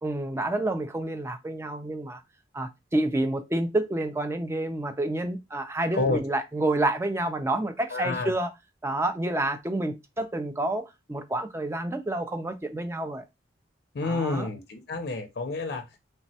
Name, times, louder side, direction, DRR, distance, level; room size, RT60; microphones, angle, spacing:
voice 1, 0.0-2.2 2.5-8.5 8.8-13.2 14.0-14.5, right 1 dB, 15° right, 0.3 m, -29 dB
voice 2, 7.9-8.3 13.9-15.9, left 3 dB, 60° left, 0.5 m, -29 dB
3.2 x 2.1 x 2.6 m
head